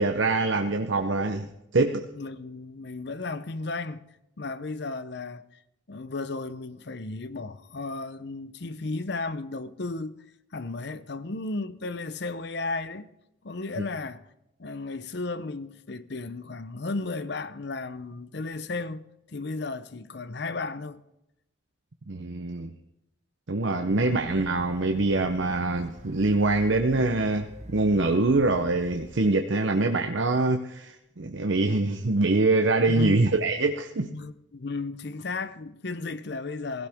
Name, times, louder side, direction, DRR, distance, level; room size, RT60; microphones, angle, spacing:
voice 1, 0.0-1.5 1.7-2.0 13.8-13.9 22.1-22.7 23.5-34.1, right 2 dB, 70° right, 0.8 m, -24 dB
voice 2, 2.1-4.0 4.4-5.4 5.9-10.2 10.5-13.1 13.4-14.2 14.6-21.0 32.9-33.2 34.1-36.9, left 3 dB, 60° left, 0.7 m, -34 dB
sound 1, 23.9-29.2, right 1 dB, 35° right, 1.2 m, -46 dB
16.5 x 16.0 x 3.6 m
head